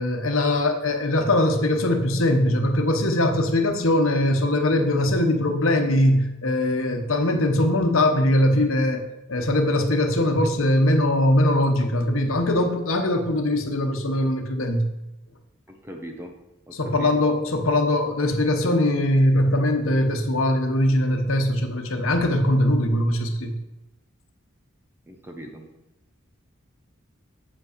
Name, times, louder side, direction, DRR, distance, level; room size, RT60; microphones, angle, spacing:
voice 1, 0.0-9.0 9.3-14.9 16.7-23.6, left 1 dB, 75° left, 5 dB, 1.1 m, -21 dB
voice 2, 15.7-16.3 16.7-17.1 25.1-25.6, right 1 dB, 10° right, 3 dB, 1.0 m, -39 dB
7.7 x 5.2 x 6.7 m, 0.98 s
head